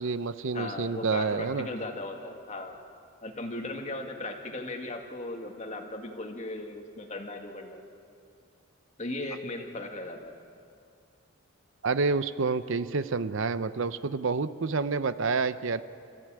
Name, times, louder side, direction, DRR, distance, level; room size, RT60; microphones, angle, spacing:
voice 1, 0.0-1.7 11.8-15.8, right 4 dB, 60° right, 13 dB, 0.6 m, -28 dB
voice 2, 0.5-2.8 3.2-7.8 9.0-10.3, left 2 dB, 30° left, 3 dB, 1.9 m, -37 dB
27.0 x 15.0 x 8.9 m, 2.4 s
head